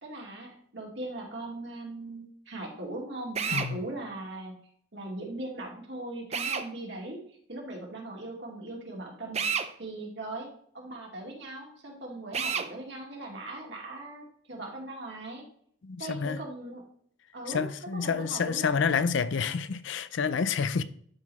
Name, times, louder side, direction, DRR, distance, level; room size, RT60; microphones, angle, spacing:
voice 1, 0.0-4.6 4.9-9.4 9.8-10.5 10.7-15.4 16.0-16.8 17.3-18.8, right 2 dB, 60° right, 2.4 m, -39 dB
Drill, 3.4-3.7 6.3-6.7 9.3-9.7 12.3-12.7, right 6 dB, 30° right, 0.5 m, -29 dB
voice 2, 15.8-16.4 17.5-20.8, left 6 dB, 65° left, 0.5 m, -28 dB
12.0 x 4.0 x 4.1 m
head